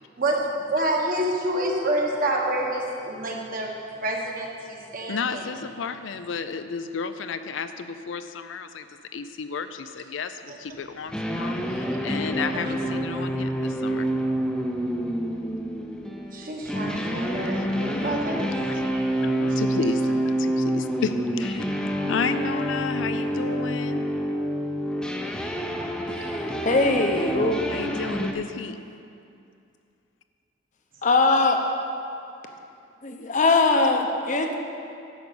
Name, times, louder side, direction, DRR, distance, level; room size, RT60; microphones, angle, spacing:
voice 1, 0.2-3.7 4.0-5.4 12.5-12.7 13.1-13.2 16.3-18.5 18.9-19.0 19.5-19.6 23.2-23.3, right 1 dB, 45° right, 0 dB, 1.3 m, -28 dB
voice 2, 5.1-14.1 17.6-17.7 18.0-18.1 18.7-18.9 19.2-21.7 22.1-24.0 27.7-28.8, left 5 dB, 70° left, 10 dB, 0.5 m, -32 dB
sound 1, 11.1-28.3, equal, 5° left, 0.6 m, -27 dB
voice 3, 26.3-27.6 31.0-31.6 33.0-34.5, left 3 dB, 40° left, 3 dB, 0.8 m, -21 dB
10.5 x 5.2 x 6.9 m, 2.5 s
head